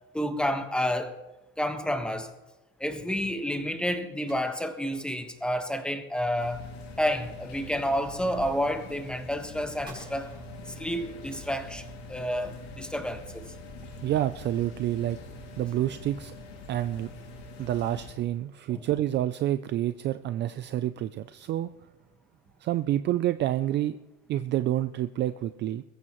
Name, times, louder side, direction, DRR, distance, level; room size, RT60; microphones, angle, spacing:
voice 1, 0.1-1.2 1.6-2.3 2.8-6.7 7.0-10.3 10.8-11.8 12.1-13.5 18.7-18.8, equal, 5° left, 6 dB, 1.3 m, -30 dB
sound 1, 4.3-5.7 9.8-11.4, right 2 dB, 15° right, 6.1 m, -52 dB
sound 2, 6.4-18.1, left 2 dB, 60° left, 6.5 m, -44 dB
voice 2, 14.0-15.2 15.6-16.3 16.7-17.1 17.6-21.7 22.6-24.0 24.3-25.8, right 13 dB, 35° right, 12 dB, 0.4 m, -28 dB
22.0 x 14.5 x 3.1 m, 1.0 s
cardioid pair, 135°, 31 cm